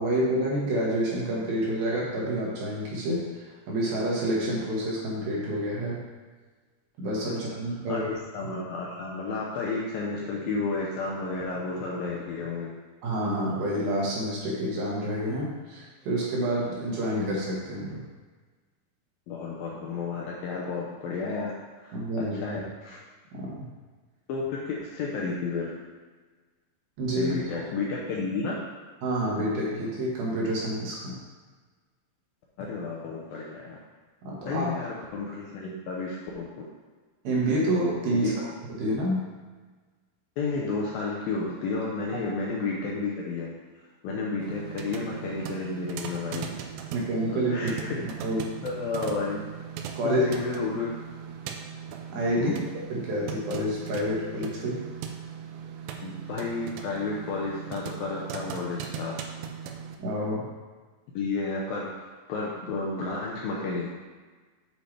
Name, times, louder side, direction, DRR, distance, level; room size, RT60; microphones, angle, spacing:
voice 1, 0.0-6.0 7.0-8.1 13.0-18.0 21.9-22.6 23.4-23.7 27.0-27.6 29.0-31.2 34.2-34.7 37.2-38.3 38.8-39.2 46.9-47.7 48.0-48.6 49.9-50.3 52.1-52.5 52.9-54.9 60.0-60.4, right 1 dB, 65° right, -5 dB, 3.3 m, -28 dB
voice 2, 8.3-12.7 19.3-21.5 21.8-22.0 22.3-23.0 24.3-25.7 27.2-28.6 32.6-33.8 34.5-36.5 38.1-38.3 40.4-43.5 44.0-46.5 47.3-48.0 48.6-49.5 50.0-50.9 52.3-52.6 56.0-59.2 61.1-63.9, left 4 dB, 75° left, -3 dB, 2.3 m, -31 dB
sound 1, 44.4-60.0, right 7 dB, 90° right, 2.1 m, -39 dB
7.9 x 7.9 x 3.4 m, 1.4 s
omnidirectional pair, 5.0 m